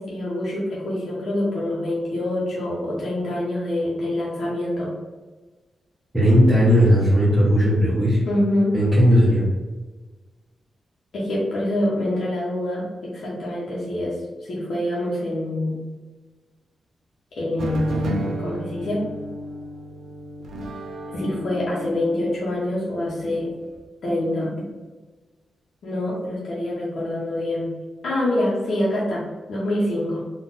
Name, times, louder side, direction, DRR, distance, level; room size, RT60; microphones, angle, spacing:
voice 1, 0.0-5.0 8.3-8.7 11.1-14.1 14.5-15.8 17.4-19.0 21.1-23.5 24.0-24.5 25.8-27.7 28.0-29.2 29.5-30.2, left 1 dB, 60° left, -6 dB, 1.0 m, -25 dB
voice 2, 6.1-8.3 8.7-9.5, equal, ahead, -10 dB, 0.9 m, -17 dB
sound 1, 17.6-23.7, right 1 dB, 75° right, 0.5 m, -33 dB
4.1 x 2.5 x 3.9 m, 1.3 s
wide cardioid pair, 175°, 0 cm